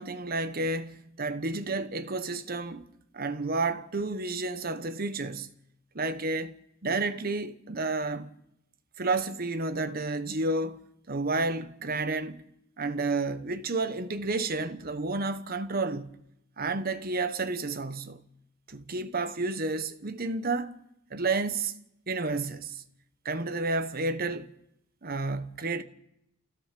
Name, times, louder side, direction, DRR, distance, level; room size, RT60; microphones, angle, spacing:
voice 1, 0.0-2.9 3.1-5.5 5.9-6.5 6.8-8.3 9.0-12.4 12.8-16.2 16.6-18.2 18.7-20.8 21.1-21.7 22.1-22.8 23.2-24.5 25.0-25.8, right 3 dB, 50° right, 1.1 m, -31 dB
29.5 x 16.0 x 6.8 m
head